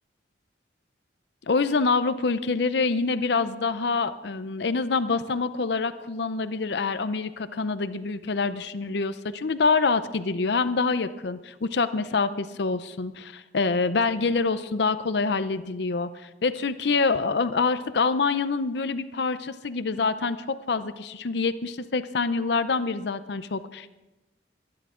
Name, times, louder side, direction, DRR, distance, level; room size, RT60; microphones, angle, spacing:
voice 1, 1.4-23.9, left 4 dB, 65° left, 12 dB, 0.6 m, -26 dB
24.0 x 10.5 x 3.7 m, 1.0 s
head